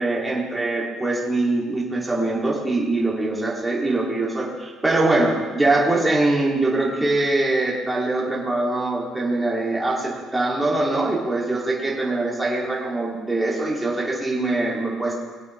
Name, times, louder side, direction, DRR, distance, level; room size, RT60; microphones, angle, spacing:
voice 1, 0.0-15.2, right 2 dB, 10° right, -4 dB, 2.7 m, -23 dB
21.5 x 8.3 x 3.3 m, 1.4 s
cardioid pair, 145°, 0 cm